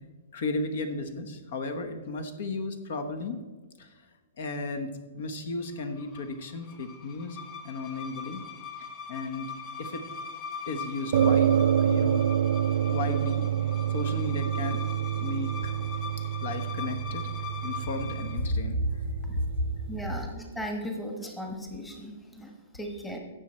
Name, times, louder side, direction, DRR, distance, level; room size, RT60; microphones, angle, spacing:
voice 1, 0.3-3.4 3.8-4.1 4.4-7.4 7.6-8.5 8.8-9.5 9.8-10.0 10.7-12.3 12.9-13.5 13.9-14.8 15.2-15.7 16.4-19.6, left 2 dB, 60° left, 8 dB, 1.2 m, -34 dB
sound 1, 5.8-18.5, left 5 dB, 30° left, 1.0 m, -41 dB
sound 2, 11.1-20.2, right 10 dB, 65° right, 0.3 m, -28 dB
voice 2, 19.9-23.2, equal, 5° left, 2 dB, 1.2 m, -37 dB
16.0 x 6.4 x 4.4 m, 1.3 s
hypercardioid pair, 160°, 0 cm